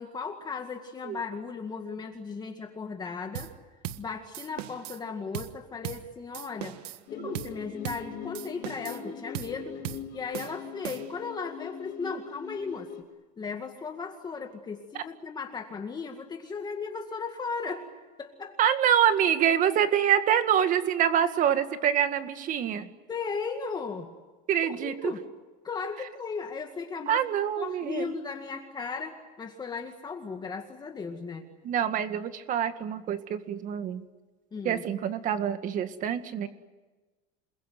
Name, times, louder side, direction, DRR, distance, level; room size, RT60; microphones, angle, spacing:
voice 1, 0.0-3.5 4.0-6.8 7.1-9.9 10.1-12.9 13.4-17.9 18.2-18.6 23.1-24.1 24.8-25.2 25.6-27.2 27.6-31.4 34.5-34.8, left 5 dB, 20° left, 4 dB, 1.9 m, -36 dB
sound 1, 3.3-3.6 3.8-4.1 4.3-5.0 5.3-5.6 5.8-6.1 6.3-7.0 7.3-7.6 7.8-8.1 8.3-9.0 9.3-9.6 9.8-10.1 10.3-11.2, right 13 dB, 85° right, 1.5 m, -38 dB
sound 2, 7.1-13.0, left 8 dB, 55° left, 4.4 m, -41 dB
voice 2, 18.6-22.9 24.5-25.1 27.1-28.1 31.6-34.0 34.6-36.5, right 9 dB, 40° right, 9 dB, 2.0 m, -26 dB
28.5 x 21.5 x 9.5 m, 1.2 s
cardioid pair, 150°, 20 cm